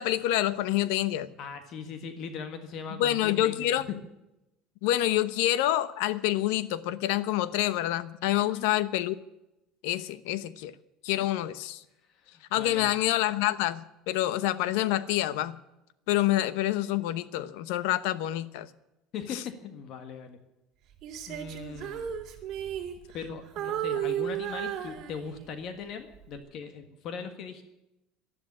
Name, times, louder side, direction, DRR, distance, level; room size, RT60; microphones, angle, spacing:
voice 1, 0.0-1.4 3.0-3.9 4.8-9.1 9.8-10.7 11.0-11.8 12.5-15.6 16.1-18.7 19.3-19.4, left 14 dB, 80° left, 1.0 m, -27 dB
voice 2, 1.4-3.9 8.4-8.7 12.1-12.9 19.1-20.4 21.3-22.1 23.1-27.6, left 6 dB, 50° left, 1.6 m, -40 dB
Female singing, 21.0-23.3 23.6-25.6 26.1-26.4, right 10 dB, 45° right, 2.9 m, -34 dB
12.5 x 11.5 x 9.9 m
cardioid pair, 145°, 0 cm